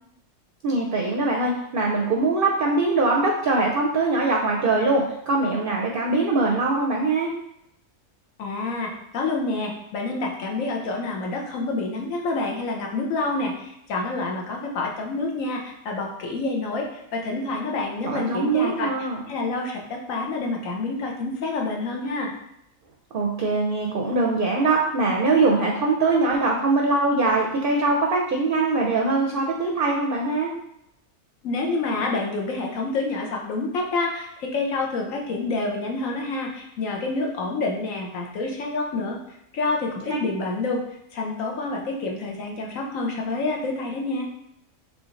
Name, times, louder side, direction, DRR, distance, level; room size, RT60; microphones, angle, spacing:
voice 1, 0.6-7.3 18.0-19.2 23.1-30.5 40.1-40.2, right 3 dB, 55° right, 0 dB, 0.6 m, -22 dB
voice 2, 8.4-22.3 31.4-39.2 39.5-40.8 41.1-44.2, left 3 dB, 75° left, 0 dB, 1.2 m, -28 dB
3.7 x 3.2 x 3.8 m, 0.79 s
omnidirectional pair, 1.4 m